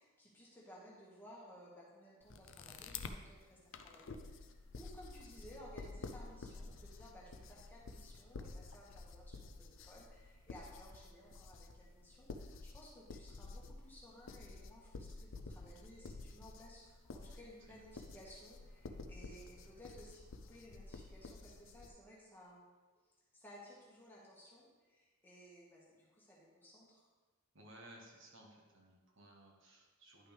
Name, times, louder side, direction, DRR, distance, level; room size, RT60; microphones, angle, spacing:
voice 1, 0.0-3.6 3.8-20.2 20.5-22.6 23.3-27.1, equal, 10° left, -6 dB, 1.6 m, -58 dB
sound 1, 2.2-3.2 3.7-21.9, left 3 dB, 60° left, 0.5 m, -51 dB
voice 2, 27.5-30.3, right 1 dB, 55° right, 0 dB, 1.2 m, -59 dB
10.5 x 5.8 x 3.4 m, 1.3 s
head